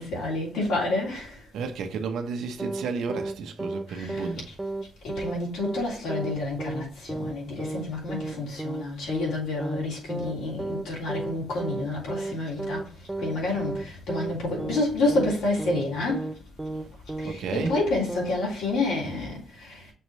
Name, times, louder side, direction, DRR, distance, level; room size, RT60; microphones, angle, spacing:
voice 1, 0.0-1.3 3.9-4.3 5.0-12.8 13.2-16.3 17.2-19.8, left 2 dB, 80° left, 3.2 m, -29 dB
voice 2, 1.5-4.5 17.2-17.8, right 5 dB, 80° right, 1.0 m, -32 dB
sound 1, 2.6-2.8 3.1-3.3 3.6-4.3 4.6-4.8 5.1-5.3 5.6-5.8 6.1-6.3 6.6-6.8 7.1-7.3 7.6-7.8 8.1-8.3 8.6-8.8 9.1-9.3 9.6-9.8 10.1-10.3 10.6-10.8 11.1-11.3 11.6-11.8 12.1-12.3 12.6-12.8 13.1-13.3 13.6-13.8 14.1-14.3 14.6-14.8 15.1-15.3 15.6-16.3 16.6-16.8 17.1-17.3 17.6-17.8 18.1-18.3, right 2 dB, 10° right, 0.6 m, -32 dB
6.6 x 3.1 x 5.4 m
cardioid pair, 90°, 0 cm